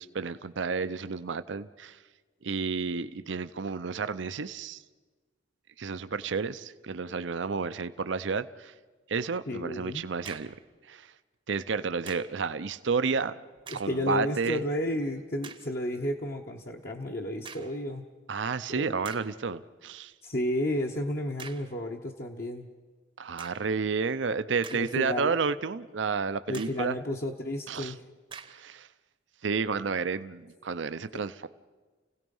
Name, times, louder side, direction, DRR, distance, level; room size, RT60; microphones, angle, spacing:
voice 1, 0.0-2.0 2.4-4.8 5.8-8.7 9.1-10.6 10.8-11.1 11.5-13.3 13.7-14.6 18.3-20.1 23.2-27.0 27.7-27.9 28.5-28.9 29.4-31.5, right 5 dB, 75° right, 12 dB, 0.6 m, -31 dB
voice 2, 9.5-10.1 13.7-18.0 18.7-19.0 20.2-22.7 24.7-25.4 26.5-28.0 31.1-31.2, left 1 dB, 50° left, 0 dB, 1.1 m, -32 dB
sound 1, 10.2-10.7 12.1-12.4 13.6-14.0 14.6-14.7 15.4-15.7 17.4-17.8 18.5-18.6 19.0-19.4 21.4-21.8 23.4-23.7 24.4-25.2 25.6-25.7 26.5-26.9 28.3-28.7, right 6 dB, 25° right, 0.8 m, -46 dB
30.0 x 17.0 x 5.5 m, 1.3 s
head